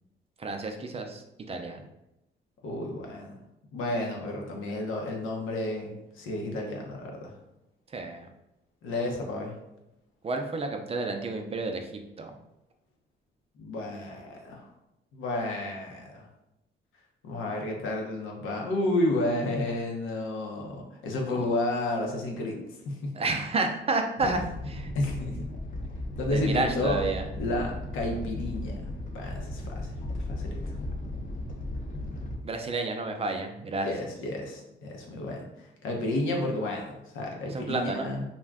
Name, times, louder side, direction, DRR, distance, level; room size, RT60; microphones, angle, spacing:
voice 1, 0.4-1.2 1.5-1.8 7.9-8.3 10.2-11.9 12.2-12.3 21.3-21.4 23.1-24.4 24.8-24.9 26.3-27.2 32.4-33.9 37.5-38.1, right 3 dB, 30° right, 4 dB, 0.4 m, -30 dB
voice 2, 2.6-3.4 3.7-7.3 8.8-9.5 13.6-14.6 15.1-16.3 17.2-23.1 24.2-24.5 24.9-25.4 26.2-27.0 27.4-30.6 33.8-38.2, left 1 dB, 85° left, 0 dB, 0.7 m, -31 dB
Animal, 24.2-32.3, left 1 dB, 40° left, 0.7 m, -36 dB
2.5 x 2.2 x 3.4 m, 0.89 s
cardioid pair, 90°, 20 cm